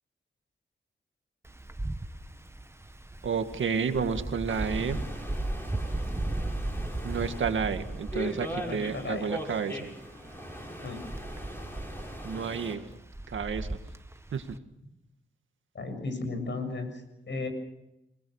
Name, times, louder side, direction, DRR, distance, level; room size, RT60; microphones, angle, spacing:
Wind, 1.4-14.6, right 1 dB, 15° right, 1.4 m, -37 dB
voice 1, 3.2-5.0 7.0-9.9 12.2-12.8 13.3-13.8 14.3-14.6, right 6 dB, 85° right, 8 dB, 1.9 m, -31 dB
sound 1, 4.5-12.8, equal, 10° left, 7.0 m, -40 dB
voice 2, 8.7-9.3 10.8-11.0 15.7-17.5, left 3 dB, 70° left, 6 dB, 7.1 m, -35 dB
28.5 x 20.5 x 6.4 m, 0.86 s
cardioid pair, 70°, 20 cm